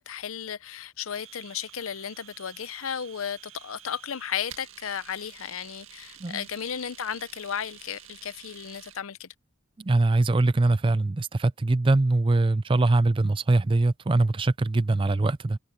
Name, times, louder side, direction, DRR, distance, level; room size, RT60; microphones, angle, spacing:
voice 1, 0.0-9.3, left 8 dB, 85° left, 0.7 m, -34 dB
Domestic sounds home sounds, 1.1-9.0, right 11 dB, 70° right, 1.9 m, -50 dB
voice 2, 9.8-15.6, right 2 dB, 25° right, 0.4 m, -22 dB
head